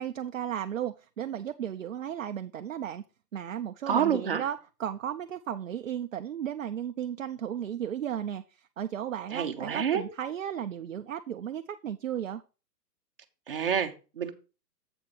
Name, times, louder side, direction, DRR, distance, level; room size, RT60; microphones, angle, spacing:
voice 1, 0.0-3.0 3.3-12.4, right 10 dB, 55° right, 0.5 m, -35 dB
voice 2, 3.9-4.4 9.3-10.0 13.5-14.3, right 8 dB, 35° right, 0.8 m, -28 dB
7.9 x 4.6 x 5.4 m
hypercardioid pair, 175°, 49 cm